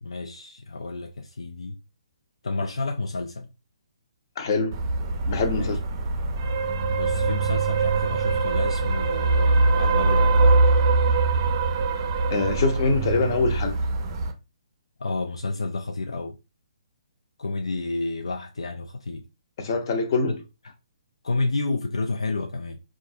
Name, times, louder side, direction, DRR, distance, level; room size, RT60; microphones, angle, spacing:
voice 1, 0.0-1.8 2.4-3.5 5.5-5.8 6.9-10.6 15.0-16.4 17.4-19.3 20.3-20.4 20.6-20.7 21.2-22.8, left 3 dB, 65° left, 0.3 m, -30 dB
voice 2, 4.4-4.8 5.3-5.8 12.3-13.7 19.6-20.4, left 3 dB, 40° left, 0.7 m, -24 dB
sound 1, 4.7-14.3, right 3 dB, 35° right, 0.5 m, -22 dB
3.8 x 2.4 x 2.7 m
figure-of-eight pair, 130°, 3 cm